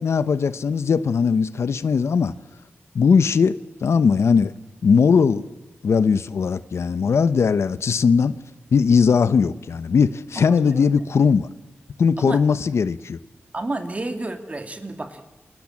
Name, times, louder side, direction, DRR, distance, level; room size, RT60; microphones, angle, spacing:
voice 1, 0.0-2.3 2.9-4.5 4.8-5.5 5.8-8.4 8.7-11.5 12.0-13.2, left 5 dB, 90° left, 0.9 m, -19 dB
voice 2, 10.4-10.9 12.2-12.4 13.5-15.4, right 2 dB, 30° right, 2.7 m, -31 dB
28.5 x 23.5 x 7.4 m
wide cardioid pair, 125°, 5 cm